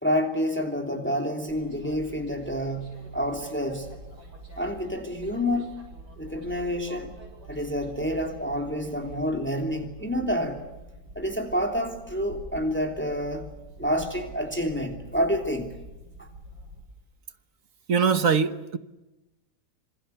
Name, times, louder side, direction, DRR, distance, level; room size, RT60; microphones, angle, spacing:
voice 1, 0.0-3.9 4.6-5.8 6.2-7.2 7.5-10.6 11.1-13.5 13.8-15.7 16.2-16.3, equal, 5° left, 3.1 m, -28 dB
sound 1, 1.5-16.8, right 1 dB, 85° right, 8.4 m, -46 dB
voice 2, 17.9-18.8, right 6 dB, 55° right, 1.5 m, -22 dB
27.0 x 26.5 x 8.1 m
omnidirectional pair, 1.8 m